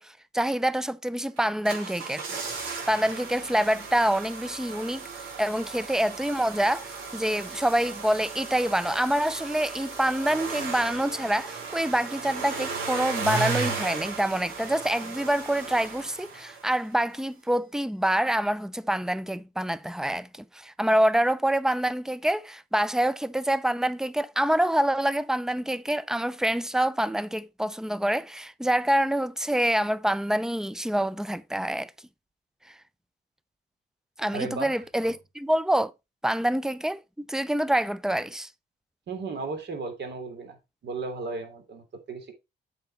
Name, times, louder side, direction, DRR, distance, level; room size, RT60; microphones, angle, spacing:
voice 1, 0.0-2.2 2.9-31.9 34.2-35.9 36.2-38.5, right 1 dB, 5° right, 0.5 m, -26 dB
sound 1, 1.4-16.9 17.1-17.2, right 5 dB, 90° right, 3.2 m, -35 dB
voice 2, 34.3-34.7 39.1-40.6 40.8-42.3, right 3 dB, 60° right, 2.9 m, -35 dB
7.8 x 5.6 x 4.2 m
cardioid pair, 90°, 20 cm